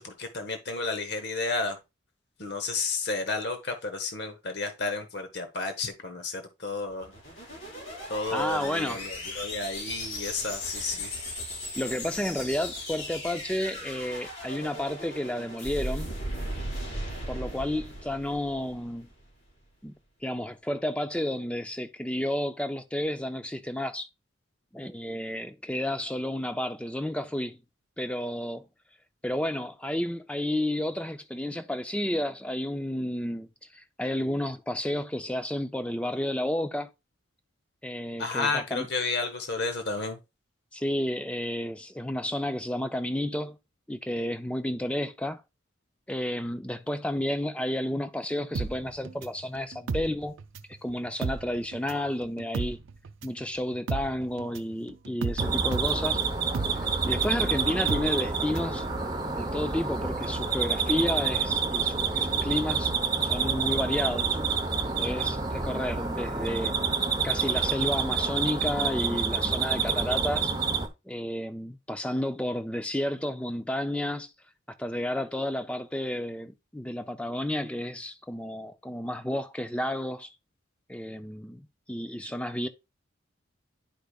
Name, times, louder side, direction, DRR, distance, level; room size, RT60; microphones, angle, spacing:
voice 1, 0.0-1.8 2.4-7.1 8.1-11.1 38.2-40.2, left 3 dB, 55° left, 1.0 m, -32 dB
sound 1, 6.9-19.2, left 1 dB, 80° left, 5.0 m, -37 dB
voice 2, 8.3-9.1 9.3-9.4 11.8-16.1 17.3-19.1 19.8-19.9 20.2-24.1 24.7-27.6 28.0-28.6 29.2-33.5 33.7-36.9 37.8-38.9 40.7-43.6 43.9-45.4 46.1-50.3 50.8-52.8 53.2-56.2 57.1-63.0 63.2-64.4 65.0-66.7 67.2-70.5 71.1-74.3 74.7-80.3 80.9-82.7, left 1 dB, 5° left, 0.4 m, -31 dB
sound 2, 48.5-50.8 51.1-58.8 59.1-59.2, right 4 dB, 85° right, 0.5 m, -34 dB
sound 3, 55.4-70.9, right 5 dB, 20° right, 0.8 m, -28 dB
10.5 x 4.9 x 2.3 m
head